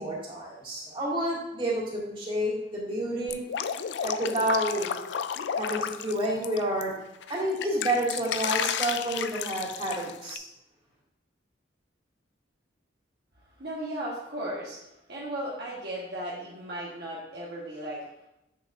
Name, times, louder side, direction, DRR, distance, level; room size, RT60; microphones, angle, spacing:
voice 1, 0.0-3.4 4.0-4.9 5.5-6.9 7.3-10.4, right 1 dB, 30° right, -5 dB, 2.1 m, -29 dB
Drip, 3.3-6.8 7.2-10.4, left 8 dB, 65° left, 0.3 m, -32 dB
voice 2, 13.6-18.0, right 1 dB, 60° right, -4 dB, 1.2 m, -36 dB
7.7 x 6.6 x 2.5 m, 0.88 s
head